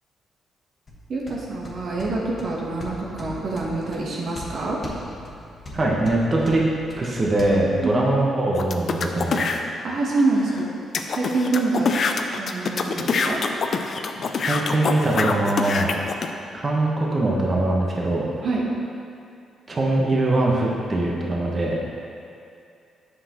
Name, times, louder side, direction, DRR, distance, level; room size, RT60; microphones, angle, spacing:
sound 1, 0.9-7.5, left 1 dB, 40° left, 1.3 m, -40 dB
voice 1, 1.1-4.8 7.8-8.0 9.8-10.7 11.1-11.9 12.4-13.4 18.4-18.7, right 3 dB, 60° right, -4 dB, 1.0 m, -26 dB
voice 2, 5.7-6.6 7.0-9.5 14.4-15.9 16.6-18.3 19.7-21.8, right 2 dB, 35° right, -3 dB, 1.0 m, -22 dB
sound 2, 8.5-9.6 10.2-10.3 10.5-10.6 10.9-16.3, left 4 dB, 55° left, 0.4 m, -25 dB
7.8 x 5.6 x 3.0 m, 2.5 s
cardioid pair, 75°, 0 cm